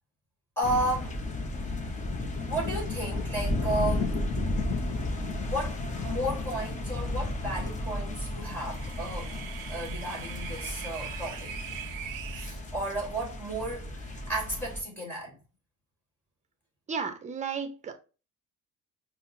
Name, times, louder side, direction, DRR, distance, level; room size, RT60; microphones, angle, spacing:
sound 1, 0.6-14.8, left 2 dB, 20° left, 0.6 m, -33 dB
voice 1, 0.6-1.2 2.4-4.1 5.5-5.8 6.0-11.5 12.3-15.3, right 1 dB, 5° left, 1.4 m, -33 dB
sound 2, 8.2-12.5, right 10 dB, 75° right, 0.5 m, -42 dB
voice 2, 16.9-17.9, right 6 dB, 20° right, 0.5 m, -33 dB
5.5 x 2.0 x 2.5 m
cardioid pair, 145°, 33 cm